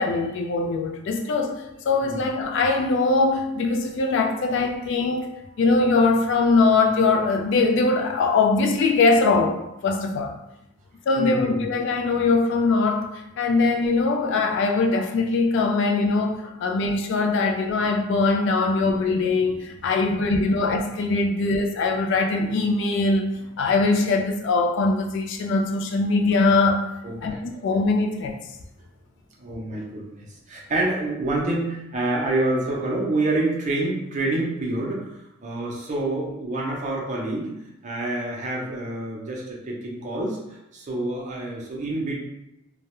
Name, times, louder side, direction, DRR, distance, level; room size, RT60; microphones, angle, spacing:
voice 1, 0.0-5.3 5.6-10.3 11.1-13.1 13.4-23.2 23.6-26.9 27.2-28.4, left 3 dB, 60° left, 4 dB, 0.3 m, -22 dB
voice 2, 11.2-11.7 19.8-20.2 27.0-27.6 29.4-35.1 35.4-37.5 37.8-42.2, right 2 dB, 35° right, -3 dB, 0.5 m, -27 dB
2.3 x 2.0 x 2.9 m, 0.89 s
head